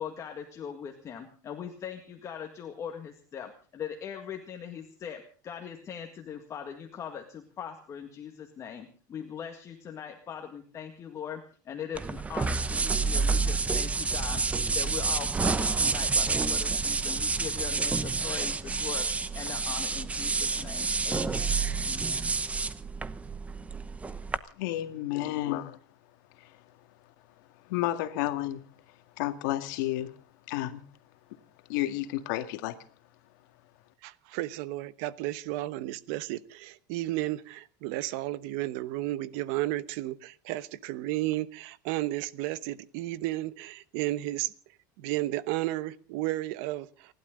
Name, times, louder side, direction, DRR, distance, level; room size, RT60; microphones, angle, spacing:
voice 1, 0.0-14.4 14.7-19.1 19.3-22.2, left 8 dB, 30° left, 1.9 m, -41 dB
sound 1, 11.9-24.4, right 4 dB, 15° right, 0.8 m, -29 dB
voice 2, 24.5-25.8 26.3-26.6 27.6-28.6 28.9-30.1 30.5-30.8 31.7-32.8, left 14 dB, 80° left, 1.9 m, -31 dB
voice 3, 34.0-44.5 45.0-47.1, right 16 dB, 65° right, 1.1 m, -33 dB
30.0 x 12.0 x 3.8 m
supercardioid pair, 145°, 10 cm